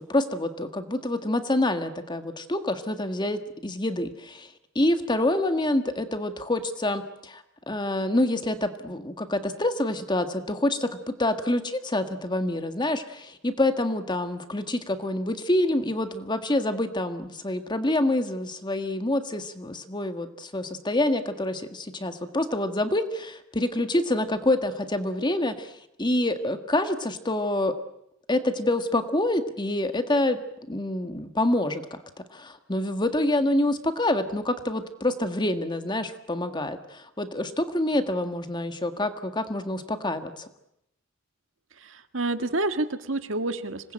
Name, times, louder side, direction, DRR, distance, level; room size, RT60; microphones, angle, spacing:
voice 1, 0.1-27.7 28.3-30.4 30.7-40.5, left 1 dB, 20° left, 8 dB, 1.7 m, -27 dB
voice 2, 41.8-43.9, right 2 dB, 70° right, 9 dB, 1.7 m, -29 dB
26.5 x 20.5 x 8.8 m, 0.82 s
head